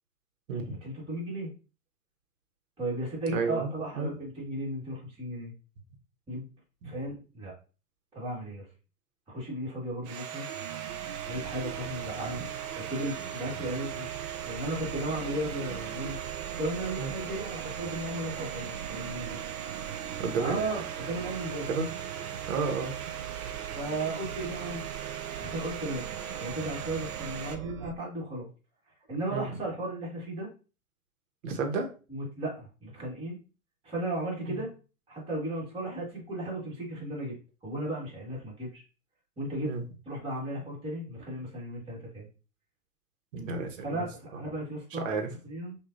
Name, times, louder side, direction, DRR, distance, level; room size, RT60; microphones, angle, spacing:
voice 1, 0.7-1.5 2.8-5.5 6.3-6.4 6.8-7.5 8.1-8.7 9.3-10.5 11.3-12.4 12.8-14.1 14.4-16.2 16.6-19.4 20.4-21.7 23.6-24.8 25.4-26.1 26.4-28.5 29.1-30.5 32.1-33.4 33.8-34.7 35.1-37.3 37.6-38.8 39.4-39.7 40.1-42.3 43.8-45.1 45.4-45.8, right 1 dB, 10° right, -6 dB, 1.9 m, -35 dB
voice 2, 3.3-3.7 4.0-4.1 6.8-6.9 12.3-12.4 17.0-17.1 20.2-20.6 21.7-21.9 22.5-22.9 29.3-29.5 31.4-31.9 34.5-34.6 39.6-39.8 43.3-44.1 44.9-45.3, right 4 dB, 60° right, 5 dB, 1.2 m, -31 dB
Domestic sounds home sounds, 10.0-27.6, right 9 dB, 30° right, 0.5 m, -39 dB
Chime, 10.5-27.9, right 9 dB, 75° right, 0.6 m, -42 dB
6.1 x 2.6 x 2.6 m, 0.34 s
hypercardioid pair, 115°, 44 cm